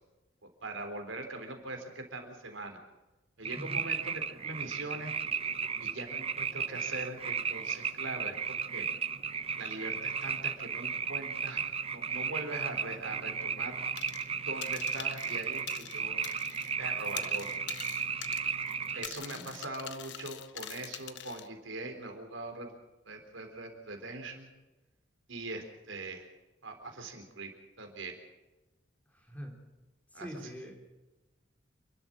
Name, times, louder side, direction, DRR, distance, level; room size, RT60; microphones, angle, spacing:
voice 1, 0.6-2.8 3.4-5.1 5.8-8.9 9.6-11.6 11.9-13.8 14.5-16.2 16.8-17.5 18.9-22.8 23.1-24.5 25.3-26.3 26.6-27.5 27.8-28.1 30.1-30.5, right 2 dB, 85° right, 5 dB, 3.8 m, -41 dB
sound 1, 3.4-19.1, right 6 dB, 30° right, 0.7 m, -35 dB
sound 2, 14.0-14.3 14.6-16.7 17.0-21.5, left 11 dB, 65° left, 1.1 m, -44 dB
voice 2, 29.2-29.5 30.1-30.7, equal, 10° left, 1 dB, 4.0 m, -43 dB
28.0 x 12.5 x 7.6 m, 1.1 s
head